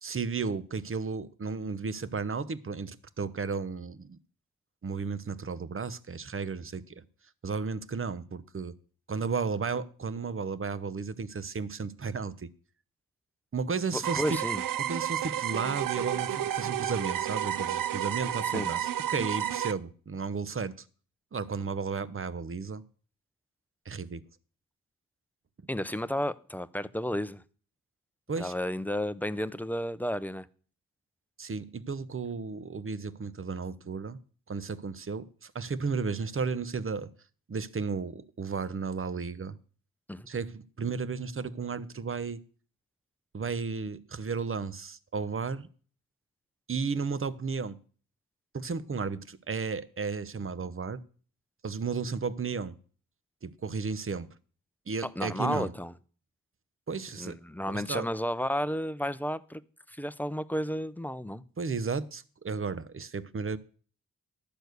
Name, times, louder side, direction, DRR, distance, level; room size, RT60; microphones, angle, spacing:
voice 1, 0.0-4.2 4.8-7.0 7.4-8.7 9.1-12.5 13.5-14.4 14.8-20.7 21.3-22.8 23.9-24.2 28.3-28.5 31.4-34.2 34.5-37.1 37.5-39.6 40.3-42.4 43.3-45.7 46.7-47.8 48.5-51.0 51.6-52.7 53.4-54.3 54.9-55.7 56.9-57.4 57.7-58.1 61.6-63.6, right 5 dB, 35° right, 0.9 m, -34 dB
voice 2, 13.9-14.6 18.5-18.7 25.7-27.4 28.4-30.5 40.1-40.3 55.0-55.9 57.1-59.6 59.9-61.4, equal, 5° left, 0.7 m, -32 dB
sound 1, 14.0-19.7, right 11 dB, 70° right, 0.6 m, -31 dB
12.0 x 4.5 x 8.1 m
cardioid pair, 45°, 35 cm